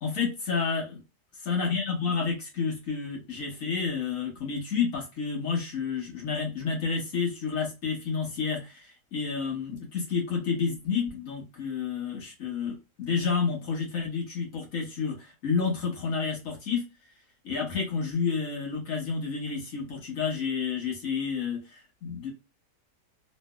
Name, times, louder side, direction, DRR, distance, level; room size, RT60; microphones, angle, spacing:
voice 1, 0.0-1.0 1.4-16.8 17.4-22.3, left 5 dB, 55° left, -1 dB, 1.6 m, -30 dB
3.3 x 3.1 x 2.2 m, 0.27 s
omnidirectional pair, 1.8 m